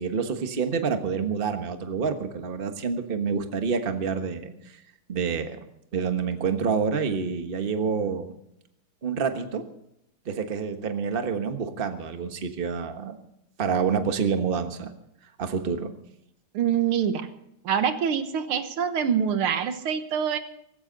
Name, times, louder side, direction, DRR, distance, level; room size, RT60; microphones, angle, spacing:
voice 1, 0.0-4.5 5.1-5.6 5.9-8.3 9.0-9.6 10.2-13.2 13.6-14.9 15.4-15.9, right 6 dB, 30° right, 7 dB, 1.2 m, -27 dB
voice 2, 16.5-17.3 17.6-20.4, right 8 dB, 90° right, 9 dB, 2.1 m, -25 dB
18.0 x 16.0 x 4.0 m, 0.79 s
omnidirectional pair, 2.3 m